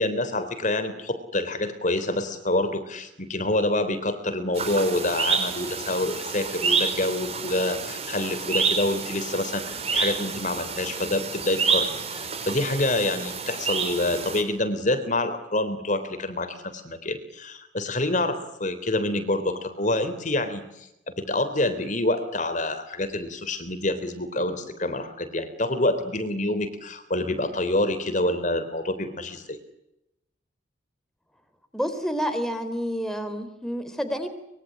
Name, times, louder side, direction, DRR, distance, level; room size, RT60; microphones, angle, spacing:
voice 1, 0.0-20.6 21.1-29.6, left 1 dB, 40° left, 10 dB, 3.6 m, -27 dB
sound 1, 4.5-14.4, right 5 dB, 35° right, 5.2 m, -29 dB
voice 2, 31.7-34.3, equal, ahead, 7 dB, 3.7 m, -29 dB
25.0 x 23.0 x 10.0 m, 0.86 s
head